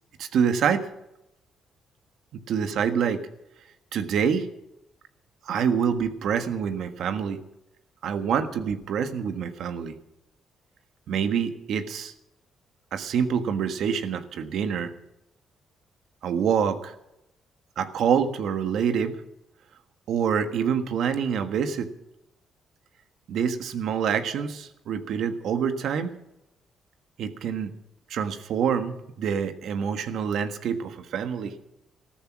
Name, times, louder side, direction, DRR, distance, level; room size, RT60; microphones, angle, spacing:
voice 1, 0.2-0.9 2.3-3.3 3.9-4.5 5.4-7.4 8.0-9.9 11.1-12.1 12.9-14.9 16.2-16.9 17.8-19.2 20.1-21.9 23.3-26.1 27.2-27.7 28.1-31.6, right 7 dB, 75° right, 9 dB, 1.5 m, -26 dB
15.0 x 13.5 x 6.0 m, 0.87 s
cardioid pair, 90°, 0 cm